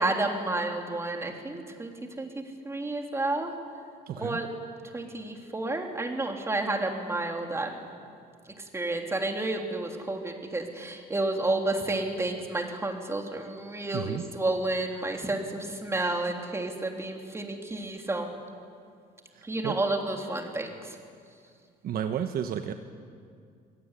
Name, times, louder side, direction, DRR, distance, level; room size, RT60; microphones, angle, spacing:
voice 1, 0.0-2.3 2.6-3.5 4.2-4.5 4.9-7.9 8.5-18.3 19.4-21.0, right 2 dB, 15° right, 3 dB, 3.4 m, -31 dB
voice 2, 4.1-4.4 13.9-14.2 19.3-19.8 21.8-22.7, right 9 dB, 60° right, 7 dB, 1.3 m, -32 dB
25.0 x 17.5 x 10.0 m, 2.2 s
cardioid pair, 110°, 17 cm